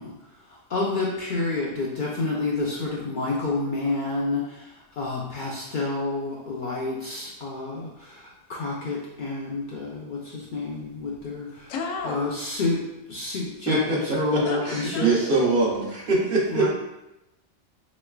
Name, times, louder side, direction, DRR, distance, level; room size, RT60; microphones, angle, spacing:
voice 1, 0.0-11.7 12.0-15.1 16.5-16.7, left 3 dB, 60° left, -4 dB, 0.5 m, -29 dB
voice 2, 11.7-12.3 14.4-15.4, left 4 dB, 85° left, 2 dB, 0.9 m, -33 dB
voice 3, 13.7-16.7, right 2 dB, 55° right, -3 dB, 0.8 m, -23 dB
3.7 x 3.1 x 2.3 m, 0.93 s
omnidirectional pair, 1.3 m